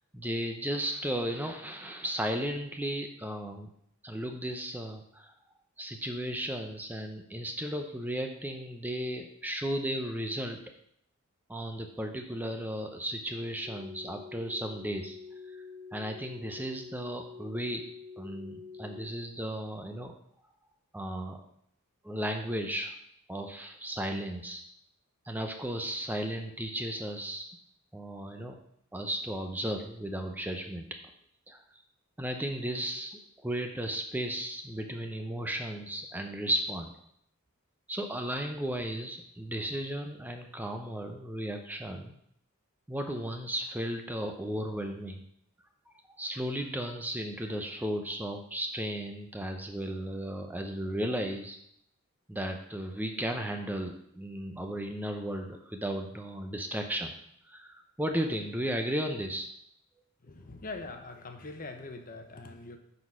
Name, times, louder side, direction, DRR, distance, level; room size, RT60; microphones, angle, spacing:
voice 1, 0.1-3.7 4.0-5.3 5.8-10.6 11.5-15.2 15.5-15.6 15.9-17.9 18.2-20.1 20.9-21.4 22.0-22.9 23.3-24.6 25.3-27.5 27.9-28.6 28.9-30.9 31.5-31.6 32.2-36.9 37.9-42.1 42.9-45.2 46.1-51.6 52.3-57.1 57.5-59.5, right 1 dB, 10° right, 4 dB, 0.6 m, -35 dB
sound 1, 13.6-19.1, left 4 dB, 30° right, 1.1 m, -46 dB
voice 2, 60.2-62.8, left 3 dB, 40° left, 6 dB, 1.0 m, -42 dB
9.5 x 4.2 x 6.0 m, 0.71 s
head